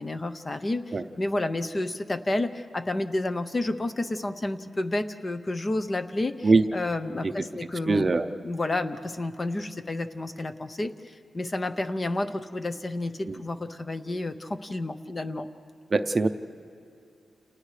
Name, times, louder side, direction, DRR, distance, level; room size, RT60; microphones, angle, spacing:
voice 1, 0.0-8.1 8.4-15.5, left 2 dB, 25° left, 9 dB, 0.6 m, -30 dB
voice 2, 7.9-8.3 13.3-13.4 15.9-16.3, right 3 dB, 25° right, 8 dB, 0.6 m, -22 dB
29.5 x 29.0 x 3.3 m, 2.4 s
wide cardioid pair, 175°, 0 cm